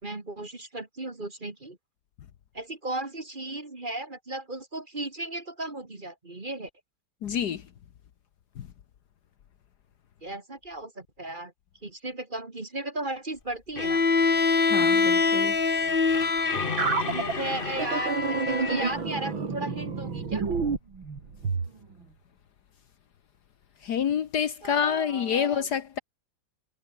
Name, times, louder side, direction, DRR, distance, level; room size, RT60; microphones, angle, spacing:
voice 1, 0.0-1.8 2.5-6.7 10.2-11.5 11.8-14.0 14.8-15.1 17.0-20.5 24.6-25.6, right 2 dB, 25° right, 2.2 m, -36 dB
voice 2, 7.2-7.6 14.7-15.5 23.8-26.0, left 8 dB, 60° left, 1.5 m, -27 dB
Bowed string instrument, 13.8-19.0, left 4 dB, 30° left, 1.6 m, -25 dB
sound 1, 16.8-21.7, right 5 dB, 85° right, 3.9 m, -29 dB
omnidirectional pair, 2.1 m